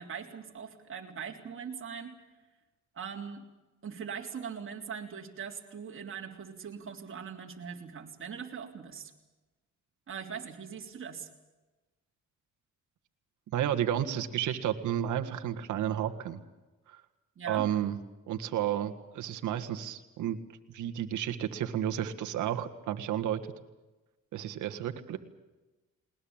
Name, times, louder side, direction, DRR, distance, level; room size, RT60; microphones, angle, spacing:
voice 1, 0.0-2.2 2.9-3.4 3.8-9.1 10.1-11.3 17.4-17.7, right 7 dB, 45° right, 1 dB, 3.5 m, -41 dB
voice 2, 13.5-16.4 16.9-17.0 17.5-18.0 18.3-20.4 20.7-23.4 24.3-25.2, right 10 dB, 80° right, 7 dB, 1.8 m, -32 dB
20.5 x 20.0 x 8.9 m, 1.1 s
cardioid pair, 90°, 30 cm